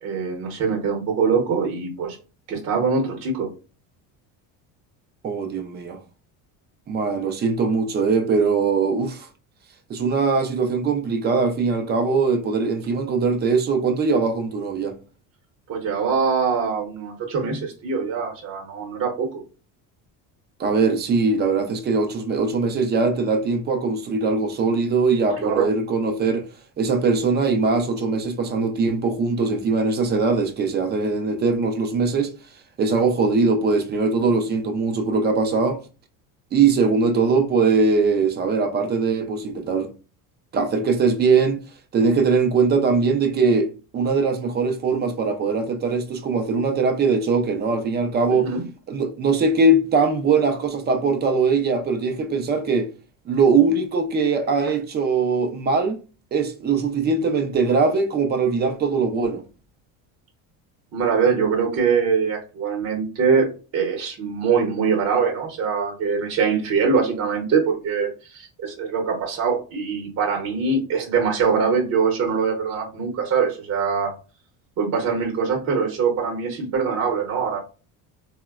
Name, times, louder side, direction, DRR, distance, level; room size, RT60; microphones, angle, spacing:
voice 1, 0.0-2.2 2.5-3.5 15.7-19.4 25.4-25.7 48.4-48.6 60.9-63.5 63.7-74.1 74.8-77.6, right 5 dB, 45° right, 0.8 m, -23 dB
voice 2, 5.2-6.0 6.9-9.3 9.9-15.0 20.6-26.5 26.8-32.3 32.8-35.8 36.5-39.9 40.5-41.6 41.9-48.5 48.9-52.9 53.3-56.0 56.3-59.4, right 4 dB, 25° right, 0.4 m, -21 dB
3.8 x 2.1 x 2.3 m
cardioid pair, 145°, 39 cm